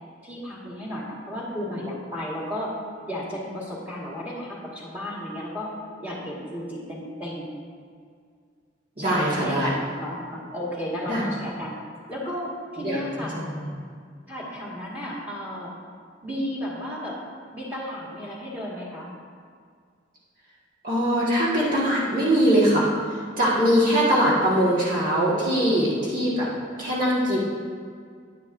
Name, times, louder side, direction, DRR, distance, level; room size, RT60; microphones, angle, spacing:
voice 1, 0.2-2.7 3.1-5.7 6.0-7.5 9.0-11.7 12.1-13.4 14.3-15.7 16.2-17.2 17.5-19.1 23.4-23.9, equal, 10° right, -6 dB, 1.9 m, -33 dB
voice 2, 9.0-9.7 11.1-11.2 12.8-13.7 20.8-22.9 23.4-26.5 26.8-27.4, equal, 45° right, -8 dB, 1.8 m, -22 dB
10.5 x 9.9 x 2.7 m, 2.1 s
head